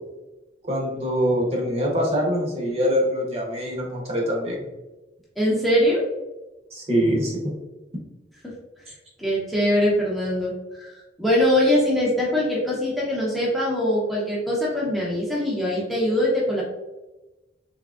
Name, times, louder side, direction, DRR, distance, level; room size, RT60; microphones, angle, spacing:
voice 1, 0.7-4.6 6.7-7.3, equal, 35° right, -1 dB, 0.8 m, -24 dB
voice 2, 5.4-6.0 9.2-10.5 10.8-16.6, left 1 dB, ahead, -6 dB, 0.6 m, -22 dB
3.5 x 2.9 x 2.3 m, 1.1 s
head